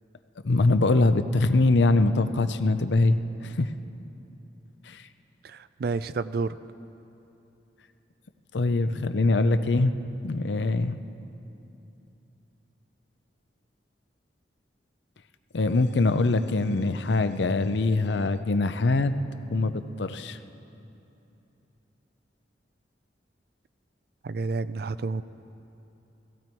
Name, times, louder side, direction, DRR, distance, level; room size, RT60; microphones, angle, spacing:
voice 1, 0.4-3.7 4.9-5.0 8.5-9.9 10.2-11.0 15.5-19.1 19.5-20.4, left 2 dB, 75° left, 11 dB, 0.6 m, -23 dB
voice 2, 5.4-6.6 24.2-25.2, right 4 dB, 55° right, 14 dB, 0.4 m, -30 dB
17.0 x 15.0 x 4.5 m, 2.9 s
head